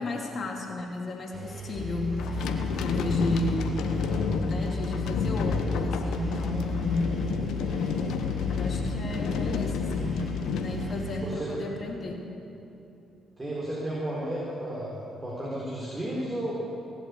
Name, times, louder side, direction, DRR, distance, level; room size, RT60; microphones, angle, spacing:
voice 1, 0.0-2.4 2.8-3.8 4.4-7.1 8.5-10.2 10.5-12.3, left 2 dB, 50° left, 1 dB, 2.7 m, -33 dB
Engine, 1.3-11.3, right 8 dB, 40° right, 2.4 m, -41 dB
sound 1, 1.7-7.4, left 3 dB, 10° right, 1.1 m, -34 dB
sound 2, 2.2-11.6, left 5 dB, 75° left, 1.0 m, -30 dB
voice 2, 11.1-11.6 13.4-16.5, right 1 dB, 25° right, -6 dB, 4.0 m, -33 dB
18.0 x 8.2 x 8.4 m, 3.0 s
hypercardioid pair, 50°, 0 cm